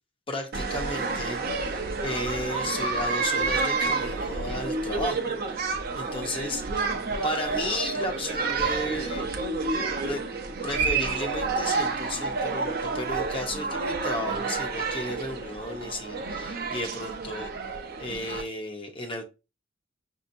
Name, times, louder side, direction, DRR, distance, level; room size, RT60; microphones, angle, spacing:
voice 1, 0.3-5.2 5.5-6.9 7.2-9.3 10.0-10.2 10.6-17.5 18.0-19.2, left 1 dB, 30° left, 0.8 m, -34 dB
sound 1, 0.5-18.4, right 4 dB, 50° right, 0.7 m, -29 dB
6.2 x 2.8 x 2.6 m
head